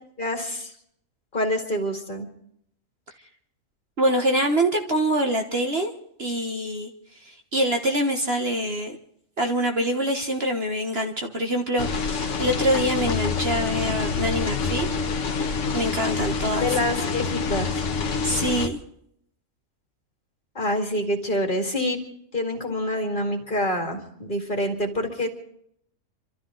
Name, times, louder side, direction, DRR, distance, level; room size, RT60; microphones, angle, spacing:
voice 1, 0.2-0.7 1.3-2.3 16.0-16.1 16.6-17.9 20.5-22.0 22.3-25.3, left 1 dB, 35° left, 3 dB, 2.4 m, -26 dB
voice 2, 4.0-5.9 6.2-6.9 7.2-9.0 9.4-14.9 15.7-16.7 18.2-18.8, right 1 dB, 45° right, 4 dB, 1.5 m, -25 dB
sound 1, 11.8-18.7, left 5 dB, 55° left, 1.5 m, -27 dB
27.5 x 13.0 x 3.9 m, 0.69 s
omnidirectional pair, 1.5 m